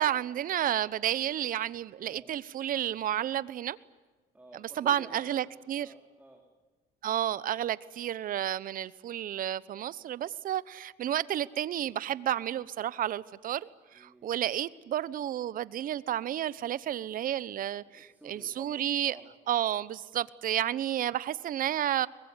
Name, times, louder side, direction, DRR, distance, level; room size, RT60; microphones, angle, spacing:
voice 1, 0.0-3.7 4.8-5.9 7.0-10.2 10.4-10.6 11.0-13.6 14.2-17.8 18.3-19.1 19.5-19.9 20.1-22.1, right 11 dB, 55° right, 1.0 m, -31 dB
voice 2, 4.3-5.5 5.8-6.4 13.9-14.3 17.9-19.3, right 1 dB, 10° right, 3.8 m, -51 dB
23.5 x 21.0 x 9.8 m
cardioid pair, 110°, 17 cm